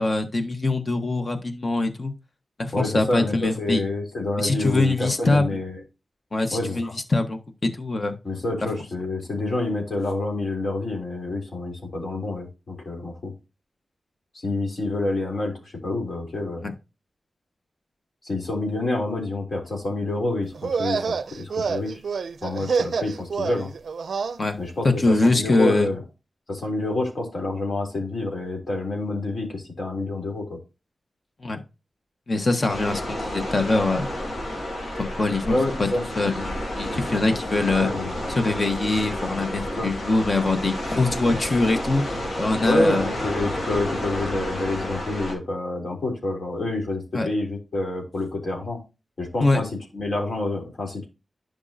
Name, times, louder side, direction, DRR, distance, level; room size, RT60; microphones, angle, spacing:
voice 1, 0.0-2.1 2.6-3.8 4.4-5.5 6.3-8.2 16.6-16.7 24.4-24.6 24.8-25.9 31.4-31.6 32.3-34.1 35.0-35.9 36.2-37.9 38.3-42.0 42.4-43.1 47.1-47.3 49.4-49.6, left 2 dB, 45° left, 6 dB, 1.4 m, -23 dB
voice 2, 2.7-5.8 6.5-7.0 8.2-13.3 14.4-16.7 18.2-22.0 22.4-23.7 24.6-26.0 26.5-30.6 35.5-36.1 37.7-38.2 39.7-39.9 42.6-48.8 49.2-51.1, left 2 dB, 60° left, 0 dB, 3.4 m, -28 dB
sound 1, 20.5-24.4, right 5 dB, 90° right, 0.4 m, -27 dB
sound 2, 32.7-45.3, left 1 dB, 75° left, 3.3 m, -30 dB
11.0 x 5.3 x 2.8 m, 0.28 s
wide cardioid pair, 75°, 0 cm